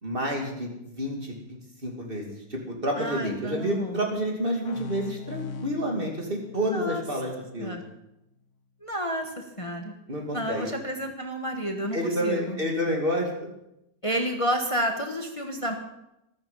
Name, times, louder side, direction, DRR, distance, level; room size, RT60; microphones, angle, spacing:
voice 1, 0.0-7.8 10.1-10.7 11.9-13.5, equal, 30° right, 0 dB, 2.8 m, -29 dB
voice 2, 3.0-4.0 6.5-7.0 7.6-7.8 8.8-9.9 10.3-12.6 14.0-15.7, equal, 20° left, 3 dB, 1.3 m, -30 dB
sound 1, 4.6-8.1, left 6 dB, 55° left, 0.9 m, -42 dB
14.5 x 13.5 x 5.6 m, 0.88 s
omnidirectional pair, 1.9 m